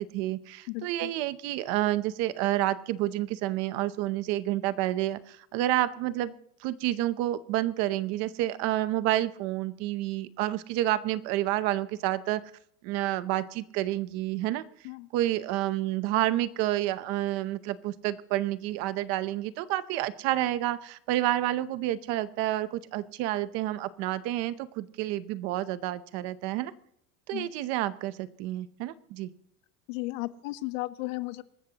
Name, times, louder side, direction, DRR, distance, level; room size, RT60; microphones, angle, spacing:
voice 1, 0.0-6.3 6.6-12.4 12.8-14.6 15.1-26.7 27.3-29.3, right 15 dB, 40° right, 15 dB, 0.7 m, -29 dB
voice 2, 0.7-1.1 14.8-15.1 27.3-27.5 29.9-31.4, left 20 dB, 65° left, 14 dB, 0.9 m, -35 dB
25.5 x 14.0 x 2.9 m, 0.69 s
supercardioid pair, 180°, 41 cm